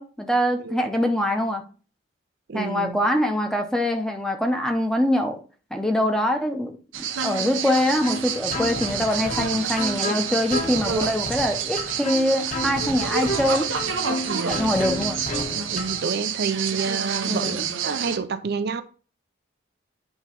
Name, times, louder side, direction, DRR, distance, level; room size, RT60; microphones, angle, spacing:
voice 1, 0.0-1.6 2.5-5.4 5.7-13.7 14.5-15.2 17.3-17.7, left 1 dB, 5° left, 0.8 m, -24 dB
voice 2, 2.5-3.0 14.3-14.7 15.7-18.8, right 4 dB, 55° right, 0.5 m, -29 dB
sound 1, 6.9-18.2, right 7 dB, 85° right, 0.8 m, -29 dB
sound 2, 8.0-16.0, left 1 dB, 40° left, 1.6 m, -31 dB
9.0 x 3.0 x 5.2 m
head